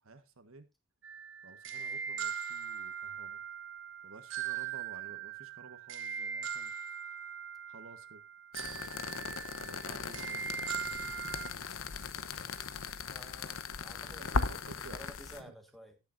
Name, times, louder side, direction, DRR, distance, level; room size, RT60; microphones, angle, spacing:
voice 1, 0.0-0.7 1.4-3.4 4.0-6.7 7.7-8.2 8.7-8.9 9.6-10.9 14.2-15.0 15.4-15.5, right 3 dB, 85° right, 1.4 m, -53 dB
sound 1, 1.0-11.5, right 7 dB, 65° right, 1.2 m, -40 dB
sound 2, 8.5-15.4, left 4 dB, 80° left, 0.9 m, -38 dB
voice 2, 12.2-12.6 13.1-14.6 14.9-16.0, equal, ahead, 1.6 m, -53 dB
18.5 x 7.0 x 2.6 m
head